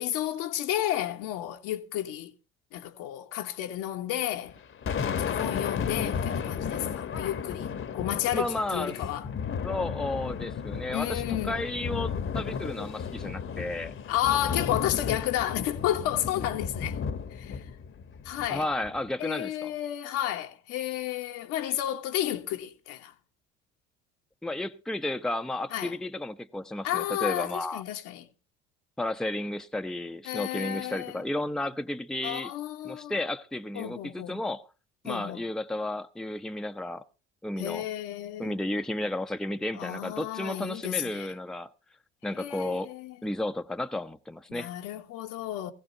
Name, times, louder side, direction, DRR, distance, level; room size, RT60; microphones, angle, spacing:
voice 1, 0.0-2.3 2.7-4.5 5.2-9.3 10.9-11.6 14.1-17.0 17.3-17.6 18.2-18.7 19.2-23.1 25.7-25.9 26.8-28.3 30.2-31.2 32.2-33.2 33.7-34.4 35.0-35.4 37.6-38.6 39.7-41.3 42.3-43.2 44.5-45.7, left 12 dB, 70° left, 1.3 m, -32 dB
Thunder, 4.5-19.1, left 7 dB, 40° left, 1.1 m, -33 dB
voice 2, 8.3-8.9 9.6-13.9 18.5-19.7 24.4-27.8 29.0-32.5 32.8-34.6 35.0-37.0 37.4-37.9 38.4-41.7 42.2-42.9 43.2-44.7, left 1 dB, ahead, 0.7 m, -33 dB
17.5 x 15.5 x 2.8 m
hypercardioid pair, 65°, 33 cm